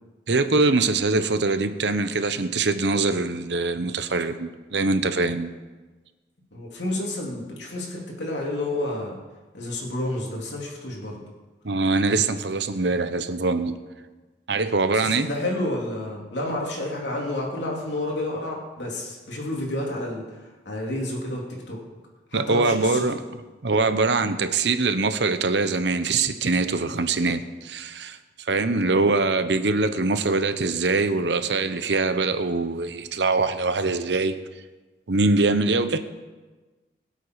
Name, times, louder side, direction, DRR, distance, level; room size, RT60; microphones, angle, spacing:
voice 1, 0.3-5.5 11.6-13.8 14.5-15.3 22.3-23.2 23.6-34.4 35.1-36.0, right 3 dB, 85° right, 10 dB, 0.9 m, -23 dB
voice 2, 6.5-9.2 9.5-11.2 14.9-21.8 22.3-23.0, left 1 dB, 90° left, -2 dB, 3.5 m, -30 dB
22.0 x 8.1 x 4.8 m, 1.3 s
head